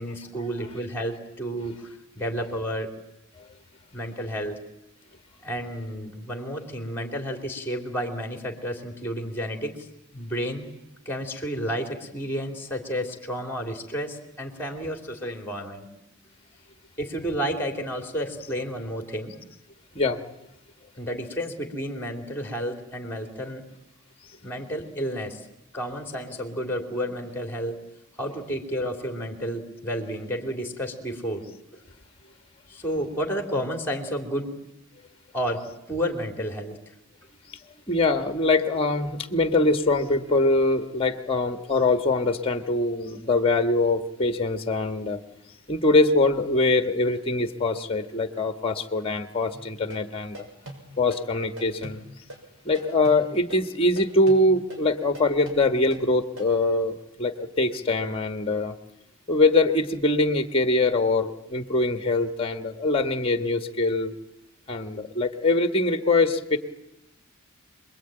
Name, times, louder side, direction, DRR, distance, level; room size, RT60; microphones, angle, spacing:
voice 1, 0.0-1.8 2.1-2.9 3.9-4.6 5.4-9.9 10.1-10.7 11.0-15.9 17.0-19.4 20.9-23.6 24.4-25.4 25.7-27.8 28.2-31.5 31.7-31.8 32.7-34.6 35.3-36.8, equal, 10° left, 4 dB, 3.0 m, -31 dB
voice 2, 37.9-45.2 45.7-50.5 51.0-52.0 52.6-58.7 59.3-64.1 64.7-66.6, left 2 dB, 25° left, 8 dB, 1.4 m, -23 dB
sound 1, 49.5-56.5, right 1 dB, 65° right, 6.5 m, -42 dB
26.5 x 21.5 x 9.0 m, 0.86 s
head